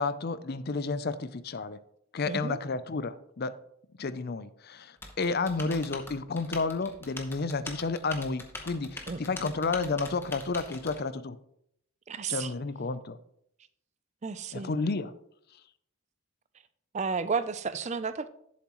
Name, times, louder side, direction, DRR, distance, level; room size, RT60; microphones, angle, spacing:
voice 1, 0.0-1.8 2.1-3.5 4.0-11.4 12.3-13.2 14.5-15.2 15.5-15.6, left 3 dB, 45° left, 14 dB, 0.5 m, -31 dB
voice 2, 2.3-2.6 9.1-9.2 12.1-12.5 14.2-14.7 16.9-18.3, right 5 dB, 30° right, 13 dB, 0.4 m, -32 dB
Typing, 5.0-11.0, left 2 dB, 10° left, 0.9 m, -42 dB
11.5 x 7.2 x 3.0 m, 0.73 s
head